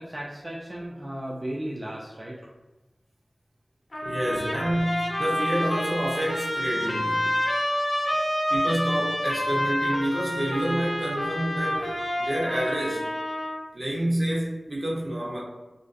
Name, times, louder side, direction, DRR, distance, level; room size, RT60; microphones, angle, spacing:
voice 1, 0.0-2.4 4.0-4.1, right 1 dB, 30° right, -4 dB, 0.3 m, -35 dB
Trumpet, 3.9-13.6, left 1 dB, 50° left, 0.6 m, -28 dB
voice 2, 4.0-7.4 8.5-11.9 12.2-13.1 13.7-15.4, right 1 dB, 55° right, -4 dB, 0.7 m, -28 dB
2.5 x 2.2 x 2.4 m, 1.1 s
wide cardioid pair, 55°, 0 cm